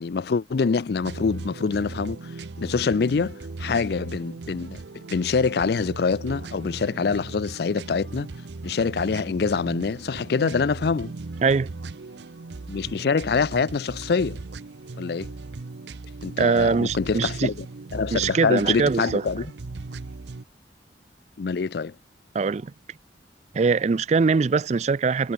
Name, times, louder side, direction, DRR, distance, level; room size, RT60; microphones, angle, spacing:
voice 1, 0.0-2.3 2.6-4.8 5.1-8.3 8.6-11.1 12.7-14.4 15.0-15.3 16.2-17.7 17.9-19.5 21.4-21.9, left 5 dB, 60° left, 0.4 m, -25 dB
sound 1, 1.0-20.4, right 3 dB, 75° right, 0.7 m, -38 dB
voice 2, 16.4-17.5 18.1-19.2 22.3-22.7 23.5-25.3, right 4 dB, 40° right, 0.3 m, -22 dB
head